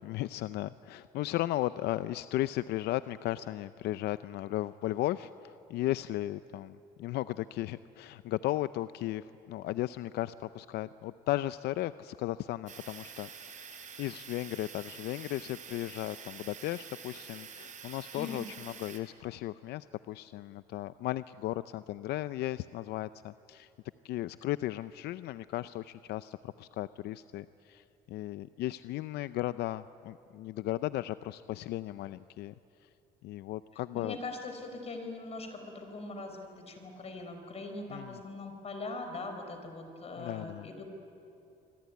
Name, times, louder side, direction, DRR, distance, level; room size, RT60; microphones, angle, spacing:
voice 1, 0.0-23.7 24.0-32.5 32.8-32.9 33.2-34.2 37.9-38.2 40.2-40.7, left 15 dB, 75° left, 14 dB, 0.5 m, -36 dB
sound 1, 12.7-19.0, right 7 dB, 50° right, 3.2 m, -47 dB
voice 2, 18.1-18.4 33.9-40.8, left 3 dB, 35° left, 5 dB, 4.8 m, -41 dB
25.5 x 24.0 x 9.5 m, 2.9 s
cardioid pair, 110°, 17 cm